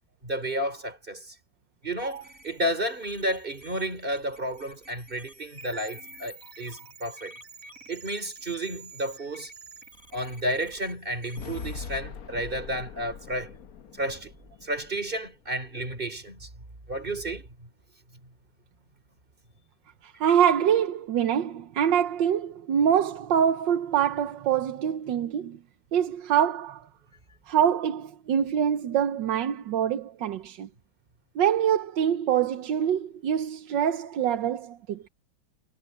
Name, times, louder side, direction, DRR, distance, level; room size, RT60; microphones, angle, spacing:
voice 1, 0.2-1.3 1.8-7.3 7.9-9.5 10.1-13.5 14.0-14.3 14.6-16.5 16.9-17.5, right 1 dB, 25° right, 3.4 m, -32 dB
sound 1, 2.0-12.0, right 2 dB, 45° right, 8.3 m, -49 dB
sound 2, 11.4-15.5, left 6 dB, 55° left, 1.3 m, -42 dB
voice 2, 20.0-25.6 25.9-26.8 27.5-30.7 31.3-35.1, right 9 dB, 75° right, 1.6 m, -25 dB
omnidirectional pair, 2.0 m